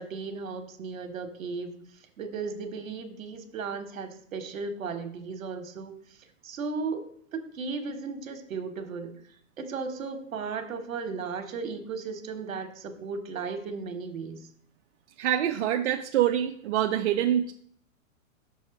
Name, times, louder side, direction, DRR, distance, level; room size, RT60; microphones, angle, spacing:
voice 1, 0.0-1.8 2.2-6.2 6.4-9.1 9.6-14.5, right 4 dB, 80° right, 6 dB, 1.4 m, -35 dB
voice 2, 15.2-17.5, right 11 dB, 55° right, 4 dB, 0.6 m, -25 dB
6.4 x 4.1 x 4.8 m, 0.63 s
hypercardioid pair, 140°, 40 cm